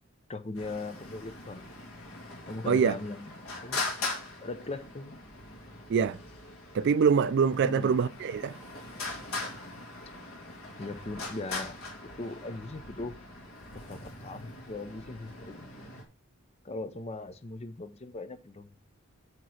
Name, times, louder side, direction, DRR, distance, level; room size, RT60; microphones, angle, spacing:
voice 1, 0.3-1.8 2.5-3.3 3.6-4.1 4.4-5.2 7.6-7.9 10.8-11.8 12.2-13.2 13.7-15.7 16.6-18.7, left 2 dB, 30° left, 0.6 m, -39 dB
Traffic noise roadway noise, 0.5-16.0, left 2 dB, 75° left, 1.7 m, -41 dB
voice 2, 6.7-8.6, right 6 dB, 55° right, 0.3 m, -24 dB
8.0 x 3.0 x 6.2 m
head